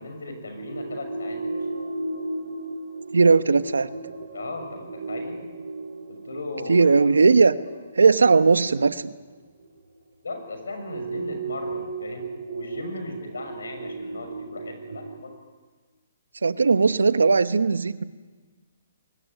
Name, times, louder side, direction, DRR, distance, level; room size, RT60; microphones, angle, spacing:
voice 1, 0.0-1.7 4.3-5.4 6.1-6.9 10.2-15.3, left 2 dB, 85° left, 6 dB, 6.6 m, -37 dB
sound 1, 0.6-9.8 10.8-15.2, right 3 dB, 70° right, 5.4 m, -35 dB
voice 2, 3.1-3.9 6.7-7.5 8.0-9.1 16.4-18.0, right 4 dB, 85° right, 13 dB, 1.1 m, -18 dB
22.5 x 19.0 x 9.9 m, 1.4 s
hypercardioid pair, 140°, 0 cm